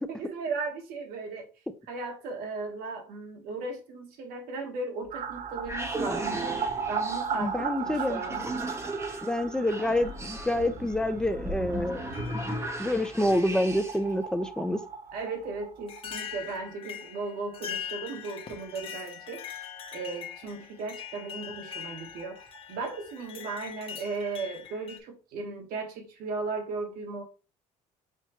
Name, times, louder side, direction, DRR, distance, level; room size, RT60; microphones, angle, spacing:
voice 1, 0.1-1.5 1.9-6.6 6.9-8.5 15.1-19.7 19.9-27.2, right 3 dB, 75° right, 1.2 m, -36 dB
sound 1, 5.1-14.1, right 1 dB, 15° right, 1.0 m, -36 dB
sound 2, 5.1-16.7 17.0-17.1 17.4-17.5 20.5-20.6 20.8-20.9 21.2-22.9 23.2-23.3, right 6 dB, 50° right, 0.5 m, -37 dB
sound 3, 6.1-6.9 8.0-8.1 9.1-9.4 10.1-10.2 10.9-11.0 12.1-12.8 13.3-14.1 15.2-15.3 15.9-25.0, left 8 dB, 40° left, 0.8 m, -42 dB
voice 2, 7.4-8.2 9.2-12.0 12.3-12.4 12.8-14.8, left 1 dB, 5° left, 0.6 m, -27 dB
5.7 x 2.2 x 2.9 m
supercardioid pair, 90°, 15 cm